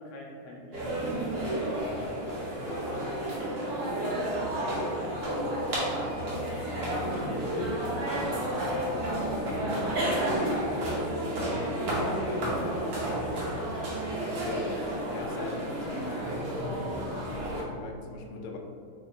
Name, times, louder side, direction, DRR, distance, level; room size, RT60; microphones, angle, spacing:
voice 1, 0.0-3.4 3.9-5.9 6.5-7.9 8.5-10.7 12.0-13.8, equal, 60° left, -4 dB, 0.8 m, -42 dB
sound 1, 0.7-17.6, right 1 dB, 55° right, 1.4 m, -31 dB
voice 2, 14.4-16.3 17.3-18.6, left 3 dB, 85° left, 2 dB, 1.5 m, -39 dB
4.8 x 2.4 x 4.0 m, 2.3 s
omnidirectional pair, 2.4 m